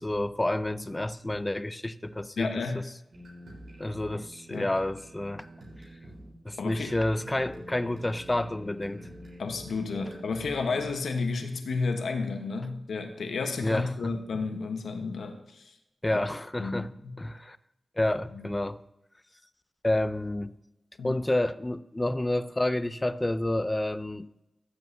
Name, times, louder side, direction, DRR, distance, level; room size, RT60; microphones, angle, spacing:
voice 1, 0.0-2.5 2.7-2.9 3.8-5.4 6.4-9.1 13.6-14.1 16.0-16.9 17.2-17.6 18.0-18.8 19.8-20.6 21.0-24.3, left 1 dB, 20° left, 14 dB, 0.5 m, -29 dB
voice 2, 2.4-2.8 4.5-4.7 6.6-6.9 9.4-15.6 16.1-16.2 16.6-17.2 18.3-18.5 21.0-21.2, left 4 dB, 85° left, 4 dB, 1.2 m, -32 dB
sound 1, 3.1-10.9, equal, 75° right, 4.2 m, -46 dB
15.0 x 8.1 x 2.8 m, 0.88 s
cardioid pair, 60°, 0 cm